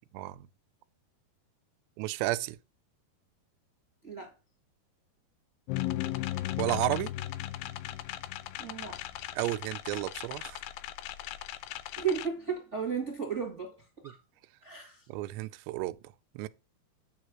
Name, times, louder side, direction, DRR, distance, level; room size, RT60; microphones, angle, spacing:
voice 1, 0.1-0.5 2.0-2.6 6.6-7.1 9.3-10.6 15.1-16.0 16.4-16.5, right 17 dB, 85° right, 2.8 m, -32 dB
voice 2, 4.0-4.3 8.6-9.0 11.9-13.7 14.0-14.2 14.6-15.0, right 6 dB, 50° right, 0.8 m, -34 dB
sound 1, 5.7-12.3, left 14 dB, 90° left, 2.1 m, -36 dB
9.4 x 3.2 x 6.1 m
omnidirectional pair, 4.9 m